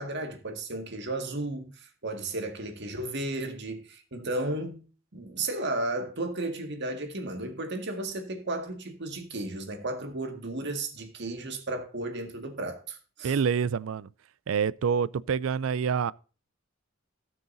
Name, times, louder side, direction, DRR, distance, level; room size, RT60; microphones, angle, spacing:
voice 1, 0.0-4.8 5.1-13.4, right 2 dB, 60° right, 1.9 m, -34 dB
voice 2, 13.2-14.1 14.5-16.1, right 6 dB, 75° right, 0.4 m, -27 dB
17.0 x 6.7 x 2.7 m
head